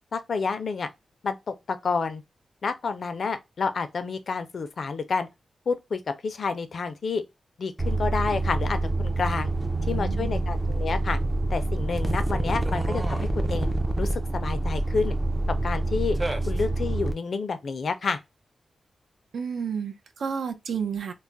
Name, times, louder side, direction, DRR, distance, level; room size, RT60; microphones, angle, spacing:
voice 1, 0.1-0.9 1.2-2.2 2.6-5.3 5.7-7.2 7.6-9.5 9.9-11.2 11.5-13.7 14.0-15.1 15.5-16.2 16.5-18.2, left 4 dB, 50° left, 0.4 m, -29 dB
sound 1, 7.8-17.1, right 2 dB, 15° right, 0.3 m, -26 dB
voice 2, 9.6-10.5 19.3-21.1, right 6 dB, 85° right, 0.5 m, -32 dB
2.3 x 2.0 x 3.8 m
wide cardioid pair, 175°, 0 cm